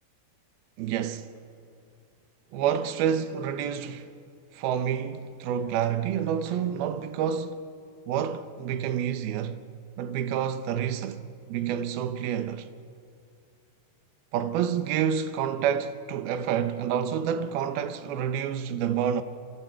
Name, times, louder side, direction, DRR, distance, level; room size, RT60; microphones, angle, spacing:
voice 1, 0.8-1.3 2.5-4.1 4.5-7.6 8.1-9.6 10.0-12.7 14.3-19.2, right 8 dB, 75° right, 2.6 m, -28 dB
28.5 x 27.5 x 4.6 m
omnidirectional pair, 4.8 m